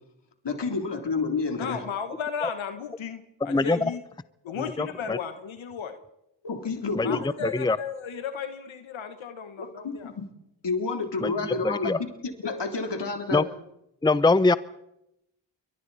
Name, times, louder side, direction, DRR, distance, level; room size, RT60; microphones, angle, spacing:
voice 1, 0.4-1.8 6.4-7.2 9.8-10.2 10.6-12.1 12.4-13.5, left 4 dB, 65° left, 4 dB, 3.3 m, -29 dB
voice 2, 1.5-4.0 4.4-6.0 7.0-10.1 12.7-12.8, left 7 dB, 90° left, 8 dB, 1.3 m, -35 dB
voice 3, 3.5-3.9 4.8-5.2 6.9-7.8 11.2-11.3 11.6-12.0 13.3-13.4 14.0-14.6, left 3 dB, 10° left, 16 dB, 0.6 m, -23 dB
28.5 x 23.5 x 4.1 m, 0.85 s
cardioid pair, 50°, 46 cm